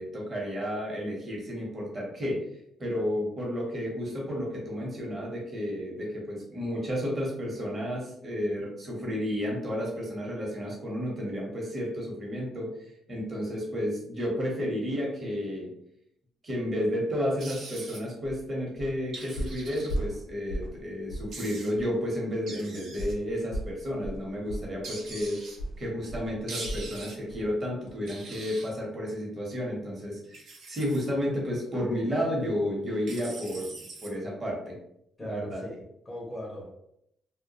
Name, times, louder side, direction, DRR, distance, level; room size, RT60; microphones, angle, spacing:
voice 1, 0.0-2.4 2.8-12.7 13.1-15.7 16.4-25.4 25.8-30.2 30.7-34.7 35.2-35.6, equal, 35° right, -2 dB, 0.9 m, -32 dB
sound 1, 17.4-18.0 19.1-19.9 21.3-21.7 22.5-23.1 24.8-25.6 26.5-27.2 28.1-28.7 30.2-31.0 33.1-34.1, right 3 dB, 70° right, 0.5 m, -42 dB
sound 2, 18.2-18.4 18.8-19.0 19.4-20.8 21.1-21.4 21.7-21.9 23.0-27.0 27.3-27.5 27.9-28.0, equal, 75° left, 0.5 m, -36 dB
voice 2, 35.2-36.7, equal, 20° left, -4 dB, 0.6 m, -39 dB
2.1 x 2.1 x 2.8 m, 0.77 s
cardioid pair, 90°, 0 cm